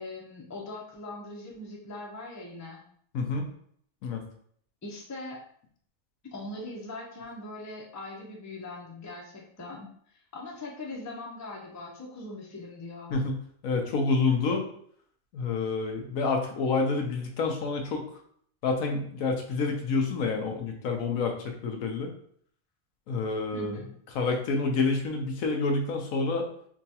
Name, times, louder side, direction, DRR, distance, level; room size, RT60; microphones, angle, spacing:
voice 1, 0.0-2.8 4.8-5.4 6.3-9.9 10.3-13.2 23.5-23.9, left 2 dB, 20° left, -2 dB, 0.4 m, -41 dB
voice 2, 3.1-3.5 4.0-4.2 13.1-13.3 13.6-14.7 15.3-18.0 18.6-22.1 23.1-23.8 24.1-26.5, left 4 dB, 90° left, 3 dB, 1.1 m, -28 dB
4.9 x 2.3 x 2.7 m, 0.62 s
omnidirectional pair, 1.4 m